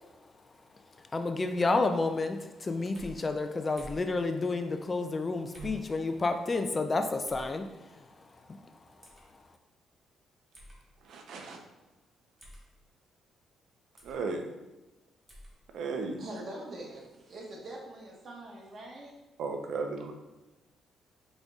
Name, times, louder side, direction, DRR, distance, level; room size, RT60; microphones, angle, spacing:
voice 1, 1.1-8.0 8.5-8.6, left 3 dB, 30° left, 7 dB, 0.4 m, -30 dB
sound 1, 2.9-3.2 3.8-4.1 5.5-5.8 7.3-7.5 9.0-9.2 10.5-10.8 12.4-12.7 14.0-14.2 15.3-15.5, equal, 15° right, 1.4 m, -48 dB
voice 2, 11.0-11.6 14.0-14.5 15.7-16.2 19.4-20.1, right 4 dB, 75° right, 4 dB, 0.6 m, -35 dB
voice 3, 16.2-19.1, right 1 dB, 50° right, -2 dB, 1.2 m, -43 dB
5.1 x 3.9 x 2.4 m, 1.1 s
cardioid pair, 90°, 0 cm